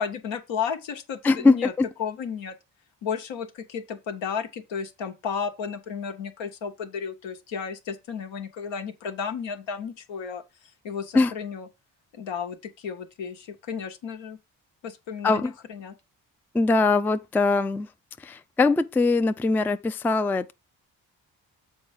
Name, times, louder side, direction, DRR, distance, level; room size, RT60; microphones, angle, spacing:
voice 1, 0.0-1.7 2.0-2.5 3.0-10.4 10.8-11.7 12.1-14.4 14.8-15.9, left 6 dB, 70° left, 1.2 m, -33 dB
voice 2, 1.2-1.9 11.1-11.3 15.2-15.5 16.5-17.9 18.2-20.5, left 3 dB, 5° left, 0.4 m, -22 dB
7.1 x 4.5 x 4.9 m
hypercardioid pair, 40°, 47 cm